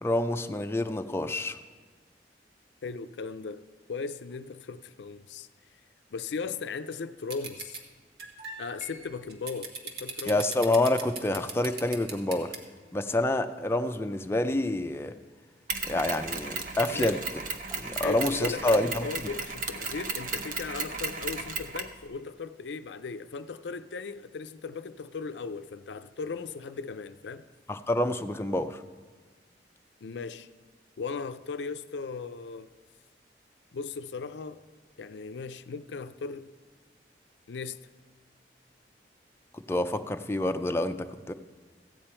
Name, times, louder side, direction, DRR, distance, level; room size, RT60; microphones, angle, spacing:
voice 1, 0.0-1.6 10.3-12.5 12.9-15.1 15.9-17.2 17.8-19.1 27.7-28.8 39.5-41.3, left 1 dB, 15° left, 0.4 m, -27 dB
voice 2, 2.8-3.6 3.9-5.5 6.1-7.8 8.6-10.4 16.9-17.2 18.0-27.4 30.0-30.5 31.0-32.7 33.7-34.6 35.0-36.5 37.5-37.8, left 5 dB, 80° left, 0.4 m, -37 dB
sound 1, 7.3-7.8 8.2-12.6, right 4 dB, 65° right, 1.3 m, -38 dB
Mechanisms, 15.7-22.0, right 4 dB, 50° right, 0.8 m, -35 dB
15.0 x 8.7 x 4.4 m
head